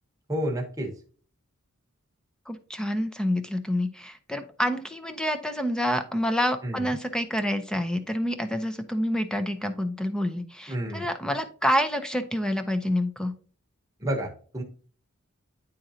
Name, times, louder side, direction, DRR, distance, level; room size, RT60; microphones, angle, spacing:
voice 1, 0.3-0.9 6.6-6.9 10.7-11.0 14.0-14.6, equal, 15° right, 1 dB, 1.1 m, -30 dB
voice 2, 2.5-13.3, equal, 5° left, 9 dB, 0.6 m, -28 dB
10.0 x 3.8 x 2.8 m, 0.43 s
head